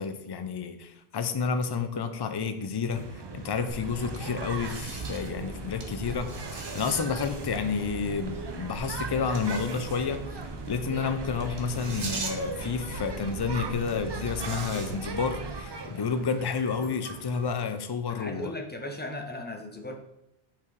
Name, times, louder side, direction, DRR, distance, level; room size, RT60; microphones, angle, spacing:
voice 1, 0.0-3.0 3.3-10.2 10.7-18.5, left 5 dB, 40° left, 9 dB, 0.3 m, -30 dB
sound 1, 2.9-17.8, right 4 dB, 45° right, 0.3 m, -40 dB
sound 2, 3.7-15.6, right 2 dB, 65° right, 1.3 m, -39 dB
sound 3, 14.7-17.9, left 1 dB, 85° left, 1.9 m, -54 dB
voice 2, 18.1-20.0, left 1 dB, 10° left, 3 dB, 0.7 m, -37 dB
5.7 x 4.7 x 4.7 m, 0.86 s
omnidirectional pair, 1.1 m